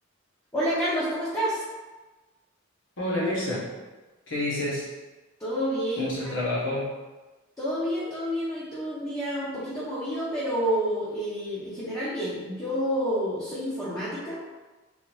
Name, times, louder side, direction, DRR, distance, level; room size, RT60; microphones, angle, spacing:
voice 1, 0.5-1.6 5.4-6.1 7.6-14.4, equal, 15° left, -10 dB, 0.7 m, -29 dB
voice 2, 3.0-3.7 4.3-4.9 6.0-6.9, left 1 dB, 65° left, -6 dB, 1.2 m, -28 dB
3.8 x 2.7 x 3.1 m, 1.2 s
head